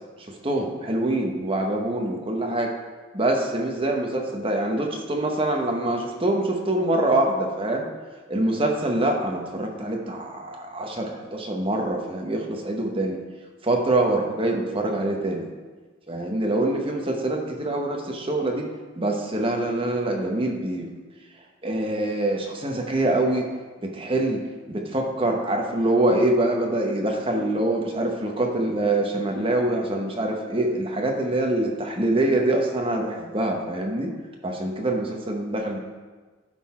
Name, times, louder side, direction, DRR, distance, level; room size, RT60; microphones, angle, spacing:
voice 1, 0.3-2.7 3.1-7.9 8.3-13.2 13.6-15.5 16.1-18.6 18.9-20.9 21.6-23.5 23.8-24.4 24.7-34.1 34.4-35.8, right 1 dB, 30° right, 1 dB, 0.9 m, -25 dB
11.5 x 4.0 x 4.3 m, 1.4 s
head